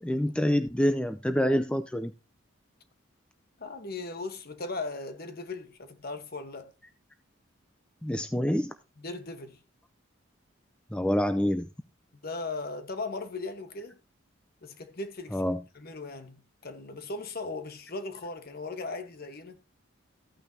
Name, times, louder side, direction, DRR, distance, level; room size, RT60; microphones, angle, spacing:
voice 1, 0.0-2.1 8.0-8.7 10.9-11.7 15.3-15.6, equal, 5° left, 0.4 m, -26 dB
voice 2, 3.6-6.7 9.0-9.6 12.2-14.0 14.6-19.6, left 3 dB, 50° left, 1.2 m, -38 dB
14.0 x 9.0 x 2.8 m
head